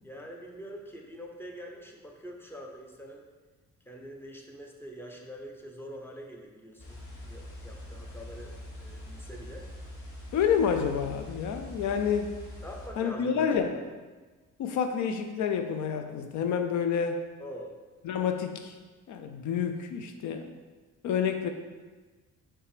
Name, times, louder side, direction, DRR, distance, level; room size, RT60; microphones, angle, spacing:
voice 1, 0.0-3.2 3.8-9.7 12.6-13.8 17.4-17.8, equal, 5° left, 1 dB, 0.9 m, -44 dB
sound 1, 6.8-12.9, left 1 dB, 50° left, 1.5 m, -43 dB
voice 2, 10.3-12.3 13.0-13.8 14.6-17.2 18.0-18.7 19.1-20.5 21.0-21.5, left 7 dB, 75° left, 7 dB, 0.5 m, -28 dB
5.7 x 3.4 x 5.0 m, 1.3 s
cardioid pair, 90°, 30 cm